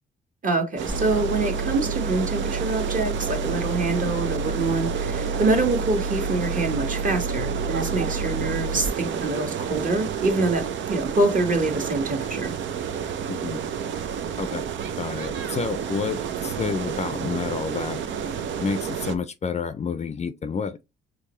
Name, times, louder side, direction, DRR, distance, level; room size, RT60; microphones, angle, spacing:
voice 1, 0.4-12.5, right 2 dB, 40° right, 1.6 m, -25 dB
sound 1, 0.8-19.2, right 8 dB, 70° right, 0.7 m, -30 dB
sound 2, 0.9-8.9, right 3 dB, 25° right, 0.7 m, -31 dB
voice 2, 13.3-13.6 14.4-14.7 15.0-18.0 18.6-20.8, left 5 dB, 35° left, 0.5 m, -29 dB
4.7 x 3.1 x 3.0 m
cardioid pair, 90°, 20 cm